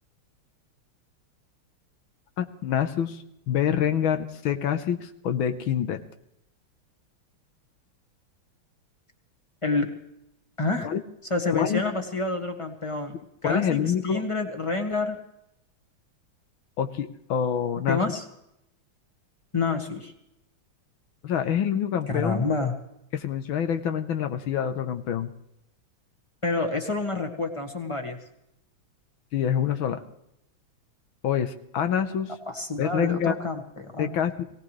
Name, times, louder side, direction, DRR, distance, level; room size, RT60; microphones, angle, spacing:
voice 1, 2.4-6.0 10.8-11.0 11.5-11.8 13.4-14.2 16.8-18.0 21.2-22.5 23.1-25.3 29.3-30.0 31.2-32.3 32.8-33.3 34.0-34.4, left 8 dB, 75° left, 8 dB, 1.7 m, -26 dB
voice 2, 9.6-9.9 10.6-10.9 11.3-13.2 13.4-15.2 17.9-18.2 19.5-20.1 22.1-22.7 26.4-28.2 32.5-34.1, left 3 dB, 15° left, 4 dB, 1.5 m, -28 dB
22.5 x 17.5 x 3.3 m, 0.81 s
omnidirectional pair, 2.3 m